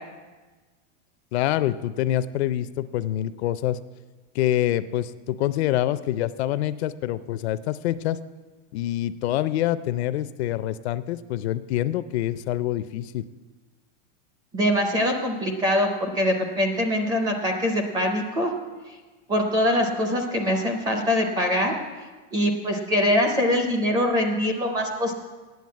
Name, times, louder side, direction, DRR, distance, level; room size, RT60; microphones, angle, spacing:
voice 1, 1.3-3.8 4.3-8.2 8.7-13.2, left 13 dB, 60° left, 14 dB, 0.5 m, -26 dB
voice 2, 14.5-18.5 19.3-21.7 22.3-25.1, left 1 dB, 10° right, 3 dB, 0.4 m, -23 dB
9.4 x 7.6 x 8.4 m, 1.3 s
supercardioid pair, 175°, 37 cm